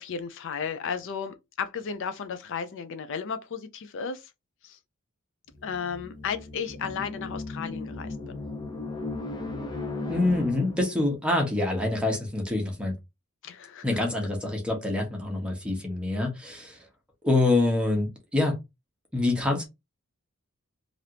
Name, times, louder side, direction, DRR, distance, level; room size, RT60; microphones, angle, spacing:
voice 1, 0.0-4.3 4.6-4.8 5.6-8.4 13.4-13.9, left 6 dB, 55° left, 0.4 m, -34 dB
sound 1, 5.5-11.0, left 3 dB, 20° left, 0.7 m, -36 dB
voice 2, 10.1-12.9 13.8-16.9 17.2-18.6 19.1-19.7, left 2 dB, 5° right, 1.0 m, -26 dB
3.3 x 2.5 x 2.8 m
head